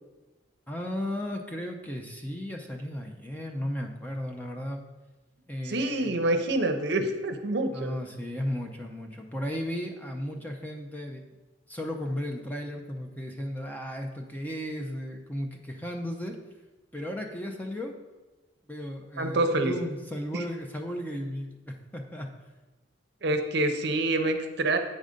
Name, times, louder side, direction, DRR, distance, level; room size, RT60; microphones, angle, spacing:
voice 1, 0.7-4.8 5.5-6.2 7.7-11.2 11.7-16.4 16.9-17.9 18.7-22.3, equal, 10° left, 2 dB, 0.5 m, -35 dB
voice 2, 5.6-7.9 19.2-19.7 20.3-20.4 23.2-24.8, right 2 dB, 55° right, 6 dB, 0.7 m, -26 dB
8.5 x 3.9 x 5.1 m, 1.2 s
head